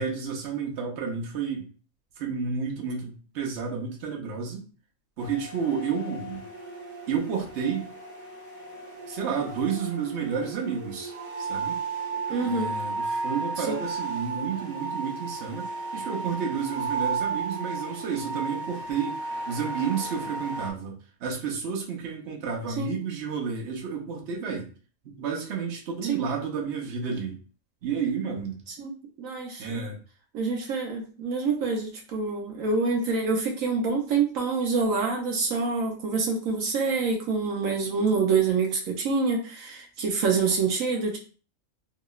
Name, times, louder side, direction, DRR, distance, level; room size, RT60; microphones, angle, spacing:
voice 1, 0.0-1.7 2.2-4.6 5.2-6.4 7.1-7.9 9.1-11.1 11.4-11.8 12.4-19.2 19.5-24.7 25.0-27.4 27.8-28.6 29.6-30.0, right 6 dB, 60° right, 0 dB, 1.0 m, -31 dB
sound 1, 5.2-20.7, right 4 dB, 30° right, 0.6 m, -34 dB
voice 2, 12.3-12.7 13.6-13.7 22.8-22.9 26.0-26.2 28.7-28.9 29.2-29.9 30.3-41.2, right 4 dB, 85° right, 0 dB, 1.1 m, -26 dB
3.0 x 2.9 x 2.3 m, 0.38 s
omnidirectional pair, 1.4 m